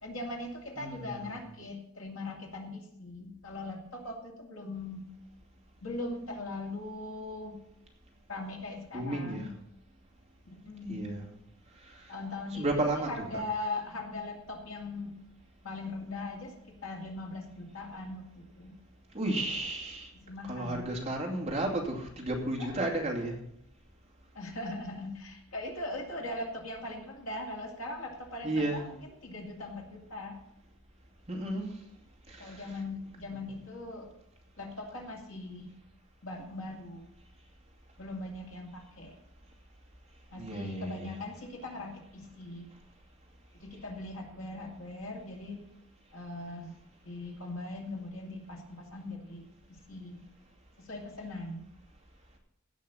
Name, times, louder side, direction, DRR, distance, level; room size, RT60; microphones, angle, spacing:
voice 1, 0.0-5.1 5.8-7.6 8.3-9.5 10.4-11.1 12.1-15.2 15.6-18.8 20.1-20.9 22.6-22.8 24.3-30.4 32.4-34.1 34.6-35.7 36.2-37.1 38.0-39.2 40.3-42.7 43.5-45.6 46.1-46.8 47.0-50.3 50.8-51.7, left 2 dB, 60° left, 0 dB, 2.5 m, -40 dB
voice 2, 0.8-1.3 8.9-9.4 10.9-11.2 11.8-12.1 12.5-13.1 19.1-20.1 20.5-23.4 28.4-28.8 31.3-31.7 32.3-32.6 40.3-41.1, right 1 dB, 30° right, -2 dB, 2.6 m, -33 dB
16.5 x 5.7 x 6.9 m, 0.76 s
head